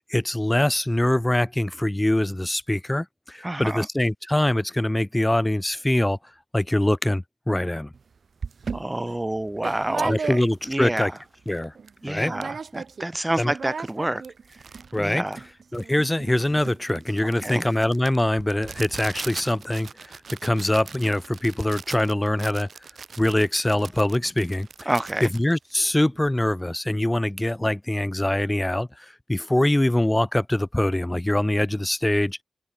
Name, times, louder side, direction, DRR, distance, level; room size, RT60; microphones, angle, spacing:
voice 1, 0.0-6.2 6.5-7.9 10.0-11.1 11.5-11.7 12.1-12.4 13.4-13.5 14.9-15.2 15.7-22.7 23.2-24.9 25.2-32.4, left 1 dB, 15° left, 0.6 m, -23 dB
voice 2, 3.4-3.9 8.7-11.1 12.0-14.2 15.0-15.4 17.4-17.6 24.9-25.3, right 1 dB, 20° right, 0.9 m, -28 dB
sound 1, 7.9-8.0 8.4-10.8 11.2-11.3 11.5-11.9 12.2-13.1 13.3-26.4, right 5 dB, 90° right, 1.3 m, -37 dB
open air
wide cardioid pair, 60°, 0 cm